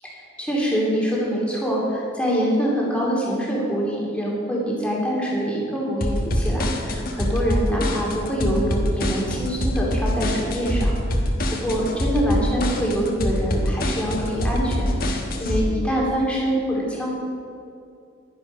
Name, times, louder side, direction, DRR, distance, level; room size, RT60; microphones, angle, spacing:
voice 1, 0.0-10.9 11.6-17.1, equal, 5° left, -4 dB, 2.6 m, -25 dB
sound 1, 6.0-15.6, equal, 45° left, 1.3 m, -24 dB
11.0 x 10.5 x 5.4 m, 2.5 s
head